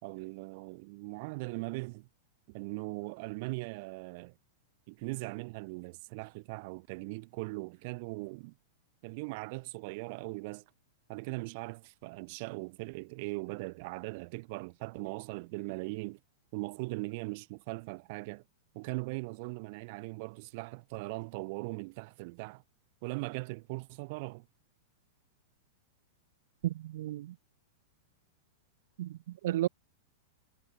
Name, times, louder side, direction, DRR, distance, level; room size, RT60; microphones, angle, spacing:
voice 1, 0.0-2.1 2.5-4.3 4.9-8.5 9.0-10.6 11.1-16.2 16.5-18.4 18.7-22.6 23.0-24.5, right 27 dB, 50° right, 2.3 m, -40 dB
voice 2, 26.6-27.3 29.0-29.2 29.4-29.7, right 14 dB, 70° right, 0.7 m, -32 dB
hypercardioid pair, 140°, 0 cm